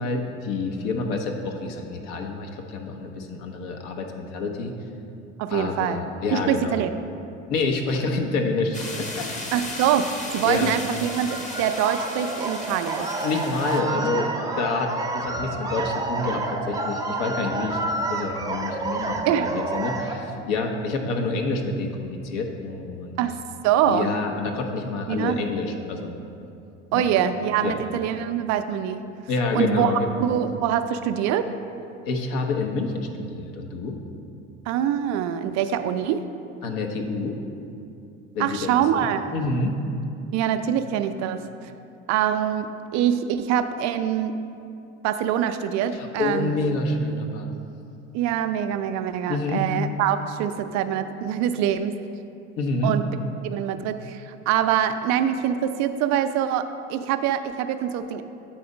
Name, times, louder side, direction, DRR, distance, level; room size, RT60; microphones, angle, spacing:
voice 1, 0.0-4.7 5.5-6.8 7.5-9.3 10.4-10.7 13.2-17.8 18.1-23.1 23.9-26.1 26.9-27.0 27.6-27.8 29.3-30.2 32.1-34.0 36.6-37.4 38.3-39.1 39.3-39.8 45.9-47.5 49.3-49.7 52.6-52.9, left 3 dB, 65° left, 3 dB, 1.0 m, -28 dB
voice 2, 5.4-6.0 6.3-6.9 9.5-13.1 19.3-19.5 23.2-23.4 23.6-24.1 25.1-25.4 26.9-29.0 29.5-29.9 30.2-31.5 34.7-36.2 38.4-39.2 40.3-41.7 42.1-44.4 45.0-46.7 48.1-52.0 52.8-53.0 53.4-58.2, right 9 dB, 50° right, 9 dB, 0.5 m, -24 dB
sound 1, 8.7-13.8, left 2 dB, 20° left, 0.9 m, -35 dB
sound 2, 11.0-20.2, right 3 dB, 10° right, 0.7 m, -29 dB
7.9 x 4.2 x 5.0 m, 2.6 s
hypercardioid pair, 70°, 35 cm